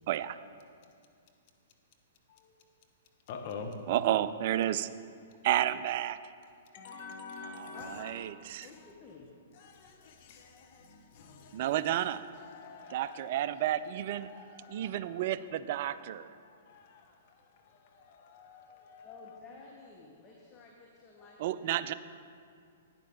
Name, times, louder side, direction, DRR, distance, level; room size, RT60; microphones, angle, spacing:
voice 1, 0.1-0.4 3.9-4.9 5.4-6.2 7.5-7.7 8.0-8.7 11.5-12.2 12.9-14.3 14.7-16.3 21.4-21.9, right 12 dB, 50° right, 15 dB, 0.4 m, -31 dB
voice 2, 2.3-2.6 3.3-3.7 6.7-8.0 8.6-8.9 9.6-13.7 14.1-15.2 16.4-19.4 21.2-21.3, left 5 dB, 45° left, 3 dB, 1.3 m, -48 dB
voice 3, 7.7-8.1 8.6-9.3 19.0-21.9, left 4 dB, 25° left, -2 dB, 1.2 m, -53 dB
11.5 x 9.5 x 3.7 m, 2.3 s
figure-of-eight pair, 115°, 0 cm